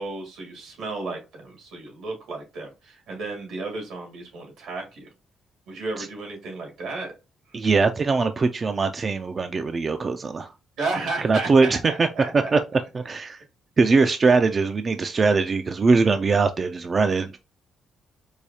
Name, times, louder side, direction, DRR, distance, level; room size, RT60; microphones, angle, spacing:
voice 1, 0.0-5.1 5.7-7.1 10.8-12.5, right 3 dB, 85° right, 1.9 m, -33 dB
voice 2, 7.5-10.5 11.2-12.1 12.3-12.6 12.9-13.4 13.8-17.4, right 4 dB, 35° right, 0.3 m, -21 dB
4.7 x 2.3 x 2.7 m
cardioid pair, 90°, 0 cm